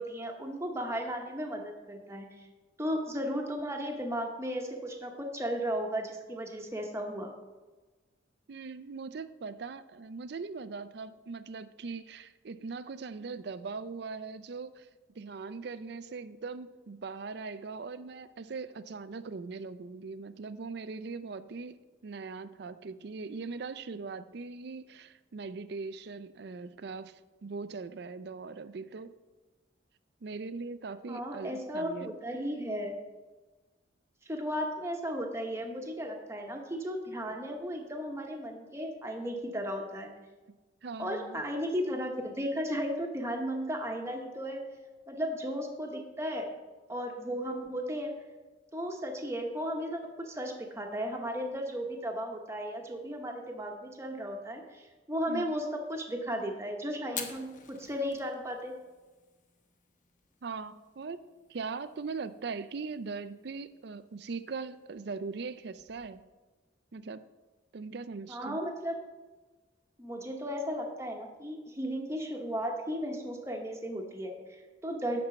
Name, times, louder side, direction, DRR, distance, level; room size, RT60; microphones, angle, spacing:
voice 1, 0.0-2.5 2.8-7.3 31.1-33.0 34.3-40.1 41.0-44.7 45.1-46.5 46.9-48.1 48.7-58.7 68.3-69.1 70.0-75.2, equal, 15° right, 2 dB, 1.0 m, -35 dB
voice 2, 8.5-14.9 15.2-29.1 30.2-32.1 40.8-41.4 55.3-55.5 60.4-66.2 66.9-67.3 67.7-68.6, right 4 dB, 55° right, 14 dB, 0.4 m, -40 dB
Fire, 57.0-66.2, left 7 dB, 40° left, 0.9 m, -50 dB
10.5 x 4.3 x 7.0 m, 1.2 s
head